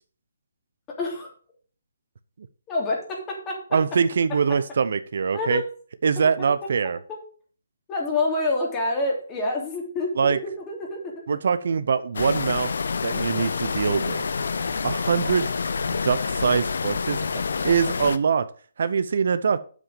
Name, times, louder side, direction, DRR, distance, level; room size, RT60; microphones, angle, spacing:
voice 1, 1.0-1.3 2.7-3.6 5.3-5.6 7.9-11.4, left 2 dB, 20° left, -1 dB, 3.0 m, -27 dB
voice 2, 3.7-5.6 6.0-7.0 10.2-10.4 11.3-12.7 13.0-14.3 14.8-15.5 15.9-18.5 18.8-19.6, right 6 dB, 60° right, 13 dB, 0.7 m, -23 dB
sound 1, 12.1-18.2, left 5 dB, 70° left, 0.7 m, -27 dB
7.6 x 6.2 x 6.8 m, 0.42 s
hypercardioid pair, 150°, 0 cm